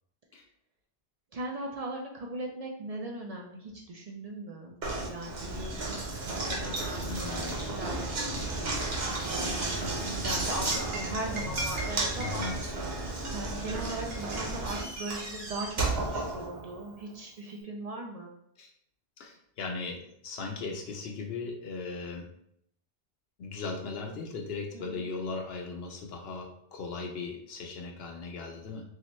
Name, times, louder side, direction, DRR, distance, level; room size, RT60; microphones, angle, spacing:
voice 1, 1.3-4.8 5.1-8.7 9.0-18.3 24.7-25.1, right 2 dB, 55° right, 0 dB, 0.4 m, -39 dB
Knock, 4.8-17.0, right 2 dB, 75° right, 1.1 m, -33 dB
voice 2, 7.1-7.6 12.2-12.6 18.6-18.7 19.2-22.3 23.4-28.8, left 4 dB, 75° left, 2 dB, 0.9 m, -38 dB
3.2 x 2.8 x 3.0 m, 0.71 s
omnidirectional pair, 1.0 m